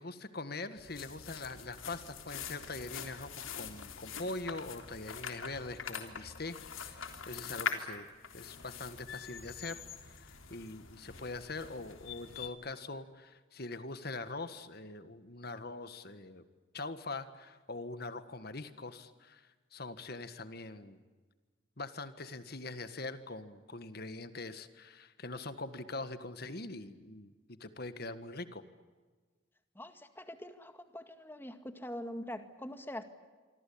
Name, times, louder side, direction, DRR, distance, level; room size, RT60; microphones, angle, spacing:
voice 1, 0.0-8.1 8.3-16.4 16.7-21.0 21.8-28.6, left 3 dB, 50° left, 11 dB, 1.7 m, -43 dB
sound 1, 0.8-12.5, left 6 dB, 85° left, 3.5 m, -44 dB
voice 2, 29.8-33.0, left 1 dB, 10° left, 8 dB, 2.1 m, -44 dB
26.5 x 25.5 x 8.7 m, 1.4 s
head